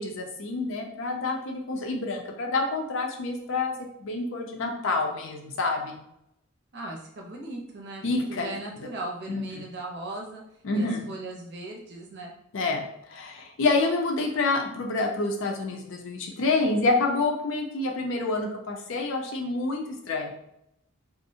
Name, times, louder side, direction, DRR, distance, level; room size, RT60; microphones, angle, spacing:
voice 1, 0.0-3.7 4.0-6.0 8.0-8.5 9.3-9.4 10.6-11.1 12.5-20.3, left 3 dB, 70° left, 2 dB, 0.5 m, -28 dB
voice 2, 6.7-8.0 8.3-10.4 10.7-12.3, right 2 dB, 55° right, -1 dB, 0.6 m, -38 dB
2.4 x 2.0 x 2.6 m, 0.80 s
head